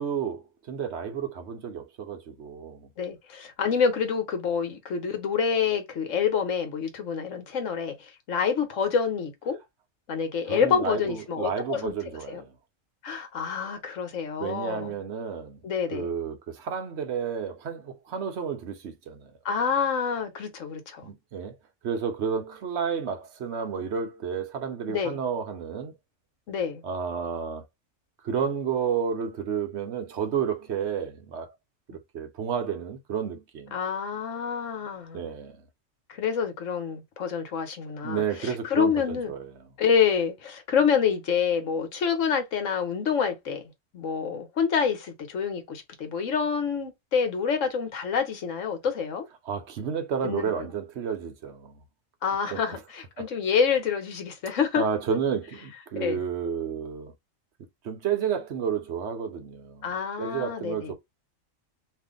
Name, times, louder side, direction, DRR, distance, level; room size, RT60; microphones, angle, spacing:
voice 1, 0.0-2.9 10.5-12.5 14.4-15.6 15.9-19.3 21.0-21.6 21.8-25.9 26.8-27.7 28.2-31.5 31.9-33.7 35.1-35.6 38.0-39.7 49.5-51.7 52.5-52.8 53.2-53.3 54.7-57.1 57.8-59.9 60.2-60.9, right 7 dB, 65° right, 1.0 m, -31 dB
voice 2, 3.0-9.6 10.1-11.9 12.3-12.4 13.0-14.9 15.6-16.1 19.4-21.1 24.9-25.2 26.5-26.8 33.7-35.2 36.1-39.3 39.8-43.6 43.9-49.3 50.2-50.5 52.2-54.8 56.0-56.2 59.8-60.9, left 6 dB, 70° left, 1.3 m, -27 dB
2.7 x 2.5 x 3.6 m
omnidirectional pair, 1.4 m